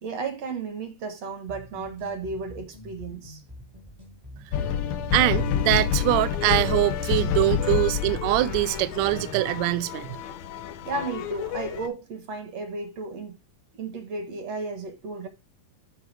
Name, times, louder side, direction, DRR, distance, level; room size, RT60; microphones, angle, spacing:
voice 1, 0.0-3.4 10.8-13.4 13.7-15.3, right 3 dB, 60° right, 2.1 m, -33 dB
sound 1, 1.5-9.5, left 1 dB, 35° right, 0.4 m, -46 dB
sound 2, 4.5-9.0, left 9 dB, 90° left, 1.4 m, -26 dB
voice 2, 5.1-10.2, right 17 dB, 75° right, 1.6 m, -23 dB
sound 3, 5.3-11.9, left 12 dB, 75° left, 1.8 m, -37 dB
13.5 x 4.5 x 3.3 m
omnidirectional pair, 3.8 m